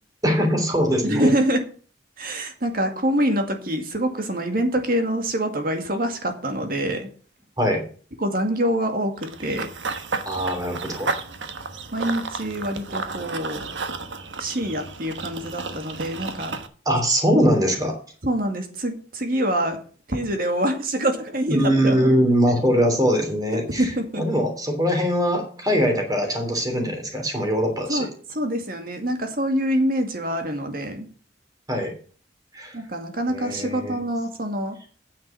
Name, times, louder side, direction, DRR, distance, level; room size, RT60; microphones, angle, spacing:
voice 1, 0.2-1.3 7.6-7.8 10.2-11.1 16.8-18.0 21.5-28.1 31.7-31.9 32.5-32.8 33.3-34.0, equal, 20° right, 3 dB, 3.2 m, -22 dB
voice 2, 1.0-1.6 2.2-7.1 8.2-9.7 11.9-13.6 14.4-16.6 18.2-19.8 20.1-22.0 23.5-24.2 27.9-28.1 28.4-31.1 32.7-34.8, right 1 dB, 50° right, 5 dB, 2.1 m, -25 dB
Run / Bird vocalization bird call bird song, 9.2-16.7, right 4 dB, 75° right, 1.3 m, -32 dB
9.5 x 7.3 x 7.2 m, 0.42 s
head